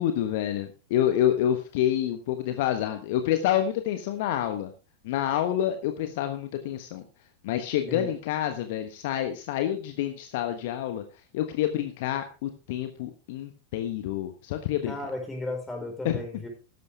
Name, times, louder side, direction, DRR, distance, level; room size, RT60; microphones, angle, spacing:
voice 1, 0.0-4.7 5.0-7.0 7.4-11.0 11.3-14.9 16.0-16.2, left 11 dB, 50° left, 7 dB, 1.2 m, -28 dB
voice 2, 14.9-16.5, left 2 dB, 10° left, 2 dB, 4.7 m, -34 dB
14.0 x 11.0 x 3.5 m, 0.33 s
figure-of-eight pair, 90°, 0 cm